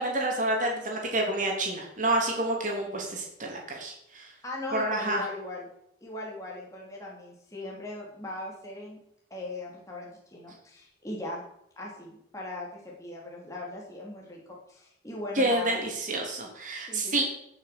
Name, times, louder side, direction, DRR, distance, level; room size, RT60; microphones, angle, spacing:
voice 1, 0.0-4.3 4.7-5.2 15.3-17.2, right 1 dB, 40° right, 0 dB, 3.2 m, -28 dB
voice 2, 4.4-5.7 6.0-9.0 9.3-11.4 11.8-15.8 16.9-17.2, left 1 dB, 15° left, -3 dB, 3.2 m, -39 dB
15.0 x 7.1 x 6.1 m, 0.76 s
head